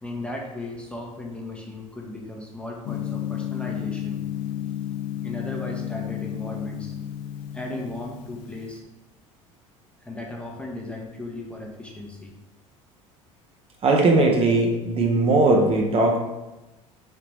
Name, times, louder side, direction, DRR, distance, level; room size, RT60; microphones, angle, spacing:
voice 1, 0.0-4.2 5.2-6.9 7.5-8.8 10.0-12.3, left 2 dB, 5° left, -1 dB, 0.7 m, -36 dB
Gong, 2.9-8.7, left 11 dB, 55° left, 0.4 m, -32 dB
voice 2, 13.8-16.2, right 2 dB, 35° right, 1 dB, 0.7 m, -19 dB
3.4 x 2.9 x 2.9 m, 1.0 s
hypercardioid pair, 65°, 17 cm